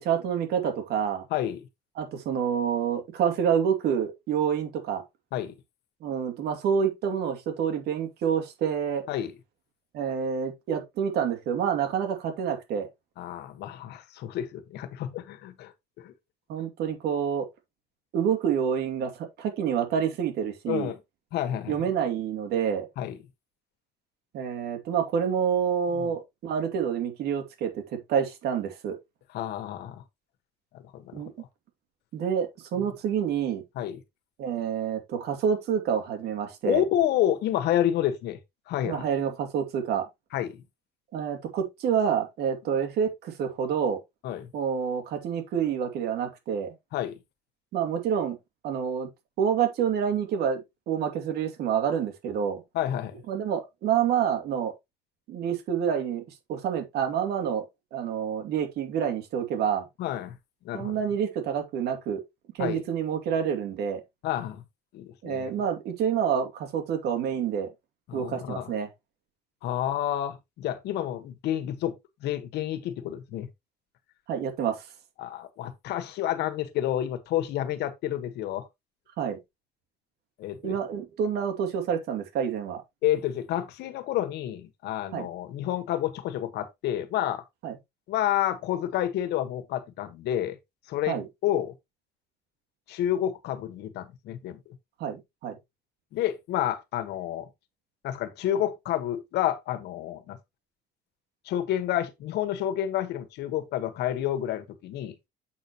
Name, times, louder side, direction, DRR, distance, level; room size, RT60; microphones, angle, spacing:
voice 1, 0.0-1.3 2.0-5.0 6.0-9.0 9.9-12.9 16.5-17.5 18.1-20.9 21.7-22.9 24.3-29.0 31.1-31.3 32.1-33.6 34.4-36.8 38.8-40.1 41.1-44.0 44.5-46.7 47.7-48.4 48.6-49.1 49.4-52.6 53.3-54.7 55.3-57.6 57.9-59.9 60.7-62.2 62.5-64.0 65.2-67.7 68.1-68.9 74.3-74.8 79.2-79.4 80.6-82.8 85.1-85.3 87.6-87.8 91.1-91.3 95.0-95.6, right 8 dB, 75° right, 2.4 m, -28 dB
voice 2, 1.3-1.7 5.3-5.5 9.1-9.3 13.2-15.7 16.0-16.1 20.7-21.0 21.3-21.8 23.0-23.2 26.0-26.1 29.3-30.0 30.9-31.2 33.7-34.0 36.6-38.4 38.7-39.0 40.3-40.6 44.2-44.5 46.9-47.1 52.7-53.1 60.0-60.4 60.6-61.0 62.6-62.8 64.2-64.6 64.9-65.5 68.1-68.7 69.6-71.9 72.2-73.5 75.2-78.7 80.4-80.7 83.0-87.4 88.1-90.6 90.9-91.7 92.9-94.6 96.1-97.5 98.0-100.4 101.5-105.1, left 12 dB, 80° left, 1.4 m, -29 dB
8.1 x 6.8 x 3.0 m
cardioid pair, 110°, 17 cm